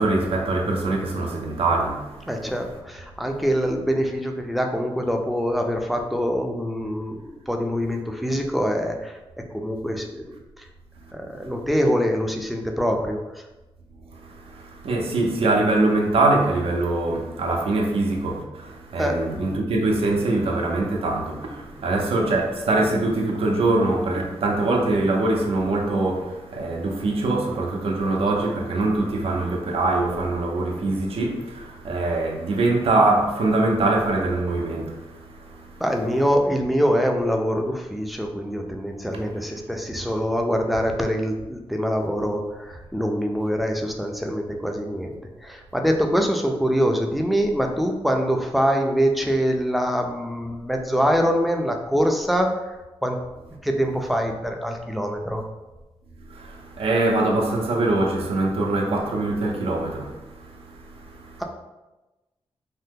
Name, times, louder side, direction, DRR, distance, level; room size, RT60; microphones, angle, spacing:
voice 1, 0.0-2.3 14.1-35.8 56.3-61.4, right 2 dB, 75° right, 0.6 m, -23 dB
voice 2, 2.3-9.1 9.5-10.4 11.1-13.2 19.0-19.2 35.8-45.2 45.4-52.5 53.0-53.2 53.6-55.4, equal, ahead, 0.3 m, -24 dB
2.7 x 2.1 x 3.5 m
wide cardioid pair, 115°, 10 cm